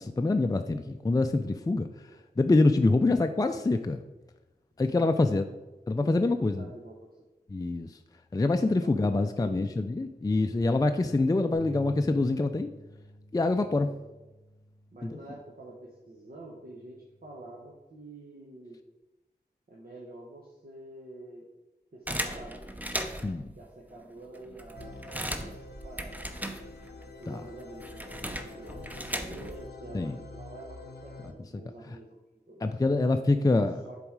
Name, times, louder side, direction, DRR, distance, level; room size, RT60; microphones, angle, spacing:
voice 1, 0.0-1.9 2.4-4.0 4.8-5.4 5.9-6.7 7.5-8.0 8.3-12.7 13.3-13.9 23.2-23.5 27.3-27.4 29.9-30.2 32.6-33.8, left 2 dB, 20° left, 7 dB, 0.4 m, -25 dB
voice 2, 5.0-5.4 6.0-7.0 8.8-9.8 13.7-14.0 14.9-18.8 19.7-21.5 21.9-22.6 23.6-26.2 27.2-32.8 33.9-34.0, right 2 dB, 60° right, -3 dB, 1.1 m, -47 dB
sound 1, 11.5-17.8, right 1 dB, 80° right, 1.0 m, -50 dB
sound 2, 22.1-23.4 24.0-24.1 24.4-27.0 27.3-29.7, right 1 dB, 10° right, 0.7 m, -37 dB
sound 3, 24.7-31.3, left 3 dB, 70° left, 0.7 m, -47 dB
7.0 x 4.1 x 4.7 m, 1.1 s
cardioid pair, 45°, 17 cm